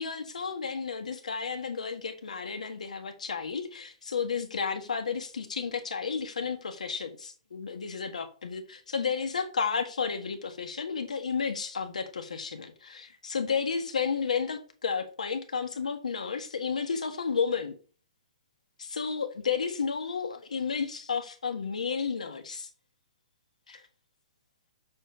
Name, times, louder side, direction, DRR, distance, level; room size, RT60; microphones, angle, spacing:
voice 1, 0.0-17.7 18.8-22.7 23.7-23.8, left 6 dB, 90° left, 1.6 m, -32 dB
7.2 x 4.4 x 5.7 m
hypercardioid pair, 150°, 4 cm